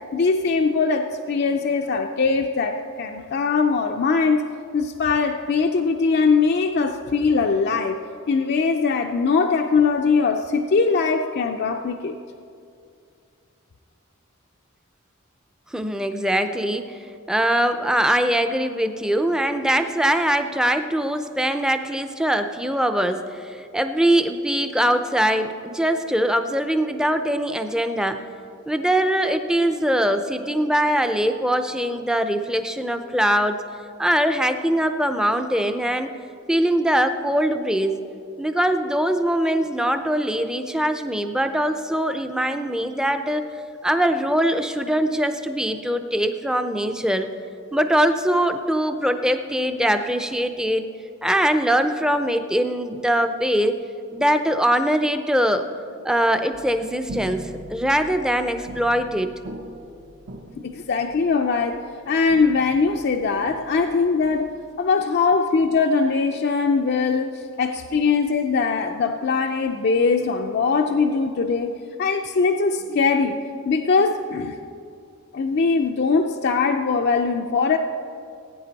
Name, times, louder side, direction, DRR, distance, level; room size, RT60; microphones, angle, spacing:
voice 1, 0.1-4.4 4.7-8.0 8.3-12.2 60.6-64.5 64.8-73.4 73.7-74.6 75.3-77.8, left 4 dB, 50° left, 4 dB, 0.4 m, -21 dB
voice 2, 15.7-17.0 17.3-28.2 28.7-33.6 34.0-36.1 36.5-38.0 38.4-43.4 43.8-47.3 47.7-50.8 51.2-53.7 54.1-55.7 56.0-59.3, right 1 dB, 5° right, 8 dB, 0.5 m, -22 dB
sound 1, 56.5-64.7, right 1 dB, 60° right, 0.8 m, -41 dB
17.5 x 9.3 x 4.0 m, 2.5 s
head